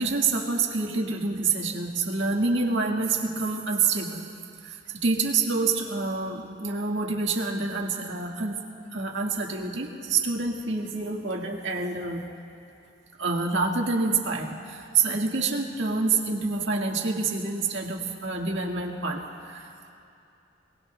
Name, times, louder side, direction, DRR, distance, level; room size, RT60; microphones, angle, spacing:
voice 1, 0.0-4.3 4.6-8.7 8.9-12.2 13.2-19.9, right 4 dB, 80° right, 0 dB, 1.7 m, -27 dB
26.0 x 18.5 x 2.3 m, 2.6 s
head